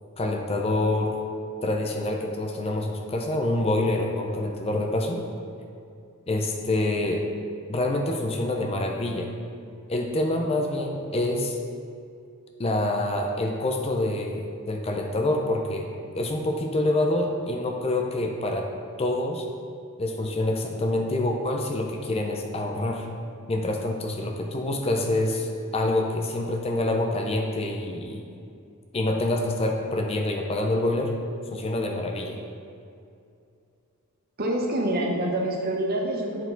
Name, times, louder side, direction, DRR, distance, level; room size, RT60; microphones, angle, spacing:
voice 1, 0.2-1.2 1.6-5.2 6.3-7.2 7.7-9.3 9.9-11.6 12.6-15.9 16.1-18.7 19.0-19.5 20.0-23.1 23.5-28.2 28.9-31.1 31.5-32.4, left 1 dB, 25° left, 2 dB, 0.5 m, -26 dB
voice 2, 34.4-36.5, right 1 dB, 45° right, 0 dB, 0.9 m, -26 dB
8.2 x 4.7 x 3.8 m, 2.5 s
head